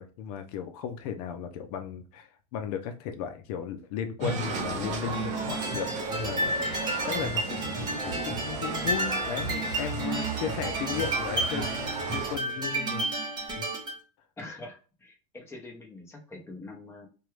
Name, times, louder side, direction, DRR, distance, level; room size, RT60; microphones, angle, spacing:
voice 1, 0.0-13.1 13.5-13.6, left 8 dB, 75° left, 0.6 m, -36 dB
sound 1, 4.2-12.4, right 3 dB, 35° right, 0.9 m, -34 dB
sound 2, 5.1-14.0, right 2 dB, 20° right, 1.1 m, -32 dB
voice 2, 14.4-17.1, left 2 dB, 10° left, 0.8 m, -44 dB
2.9 x 2.3 x 3.1 m
supercardioid pair, 135°, 20 cm